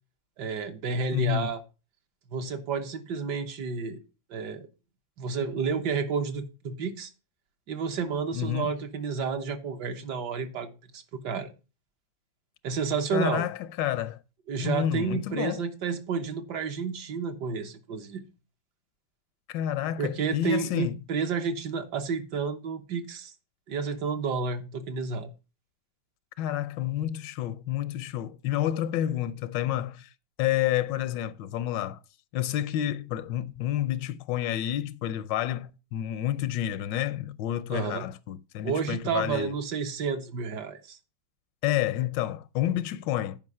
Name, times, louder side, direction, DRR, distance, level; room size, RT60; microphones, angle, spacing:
voice 1, 0.4-1.6 2.3-4.0 4.3-4.7 5.2-7.1 7.7-11.5 12.6-13.5 14.5-18.2 20.0-23.3 23.7-25.3 37.7-38.1 38.6-41.0, right 5 dB, 70° right, 1.7 m, -31 dB
voice 2, 1.1-1.5 8.3-8.7 13.1-14.2 14.6-15.6 19.5-21.0 26.4-30.1 30.4-32.0 32.3-39.5 41.6-43.4, left 12 dB, 80° left, 1.3 m, -29 dB
9.6 x 5.2 x 5.5 m
omnidirectional pair, 2.0 m